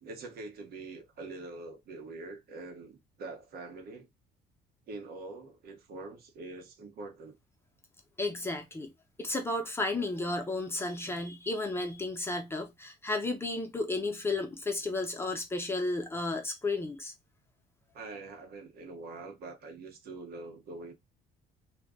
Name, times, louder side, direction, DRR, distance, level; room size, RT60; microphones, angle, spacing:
voice 1, 0.0-4.1 4.9-7.3 17.9-20.9, right 3 dB, 65° right, 0.9 m, -44 dB
voice 2, 8.2-8.9 9.2-17.1, left 2 dB, 15° left, 0.7 m, -33 dB
2.4 x 2.2 x 3.5 m
cardioid pair, 110°, 17 cm